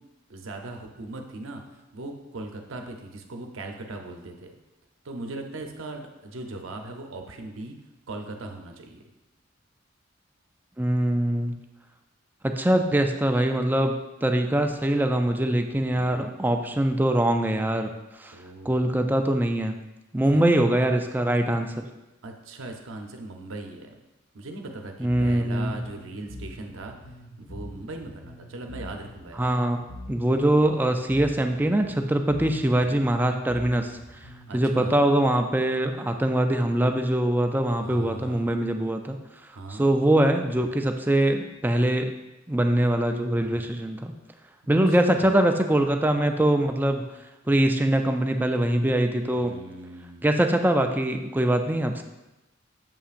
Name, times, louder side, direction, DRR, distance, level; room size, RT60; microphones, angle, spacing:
voice 1, 0.3-1.6 1.9-4.5 5.0-7.8 8.1-9.0 15.9-16.3 18.3-19.1 20.3-20.5 22.2-23.9 24.3-27.0 27.4-29.5 34.5-35.0 37.8-38.5 39.5-39.9 44.7-45.4 49.3-50.2, right 2 dB, 85° right, 3 dB, 0.7 m, -39 dB
voice 2, 10.8-11.5 12.4-13.9 14.2-17.9 18.2-18.4 18.7-19.8 20.1-21.8 25.0-25.8 29.4-29.8 30.1-33.9 34.5-39.2 39.7-42.1 42.5-44.1 44.7-47.0 47.5-49.5 50.2-52.0, right 1 dB, 10° right, 5 dB, 0.3 m, -23 dB
Bass guitar, 25.8-34.7, equal, 35° left, 1.4 m, -44 dB
7.2 x 5.6 x 2.5 m, 1.0 s
head